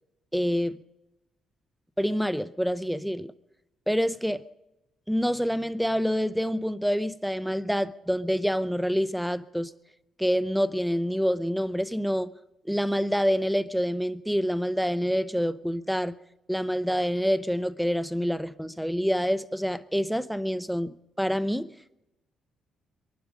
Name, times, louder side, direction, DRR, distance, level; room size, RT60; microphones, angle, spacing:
voice 1, 0.3-0.8 2.0-3.3 3.9-4.4 5.1-9.7 10.2-12.3 12.6-16.2 16.5-21.7, equal, ahead, 0.7 m, -27 dB
23.0 x 12.0 x 5.2 m
cardioid pair, 90°, 0 cm